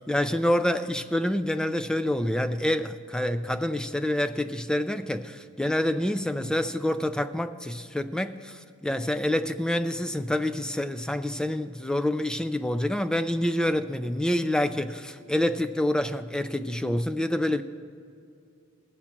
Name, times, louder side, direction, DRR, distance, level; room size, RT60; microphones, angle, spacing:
voice 1, 0.1-17.6, left 1 dB, 5° left, 11 dB, 0.3 m, -27 dB
19.5 x 7.3 x 4.4 m, 2.5 s
head